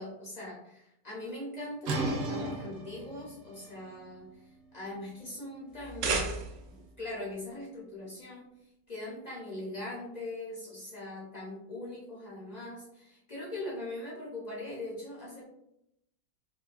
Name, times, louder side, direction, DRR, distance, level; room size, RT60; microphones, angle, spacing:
voice 1, 0.0-4.3 4.7-6.3 6.7-8.5 8.9-15.4, left 1 dB, 55° left, -6 dB, 0.4 m, -41 dB
sound 1, 1.8-7.5, right 2 dB, 70° right, 1.2 m, -38 dB
mp toaster, 5.7-6.9, right 4 dB, 90° right, 0.6 m, -33 dB
3.7 x 2.5 x 2.4 m, 0.81 s
omnidirectional pair, 1.9 m